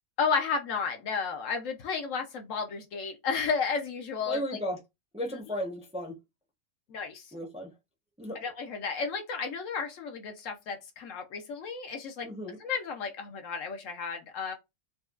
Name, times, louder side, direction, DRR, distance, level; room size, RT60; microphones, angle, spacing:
voice 1, 0.2-4.4 6.9-7.2 8.4-12.3 12.6-14.5, left 5 dB, 65° left, 1.0 m, -32 dB
voice 2, 4.3-4.8 5.1-6.2 7.3-7.7 8.2-8.4 12.2-12.6, equal, 5° right, 0.6 m, -34 dB
4.2 x 2.3 x 2.3 m
omnidirectional pair, 1.5 m